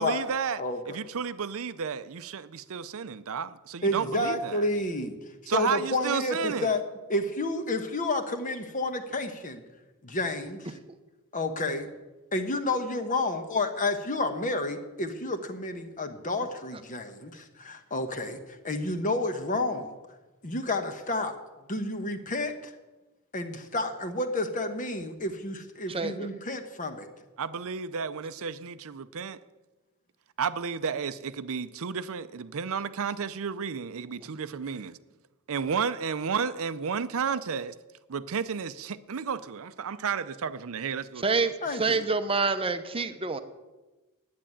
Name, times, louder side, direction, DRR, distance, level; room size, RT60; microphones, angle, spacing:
voice 1, 0.0-4.6 5.5-6.7 27.4-29.4 30.4-35.0 35.5-37.7 38.1-41.5, right 6 dB, 65° right, 0.6 m, -32 dB
voice 2, 3.8-5.2 5.4-6.8 7.1-9.6 10.0-10.8 11.3-11.9 12.3-20.0 20.4-21.3 21.7-22.7 23.3-27.1 41.6-42.0, left 2 dB, 35° left, 1.2 m, -30 dB
voice 3, 25.9-26.3 41.2-41.5 41.8-43.4, right 4 dB, 25° right, 0.7 m, -27 dB
10.0 x 9.5 x 8.7 m
head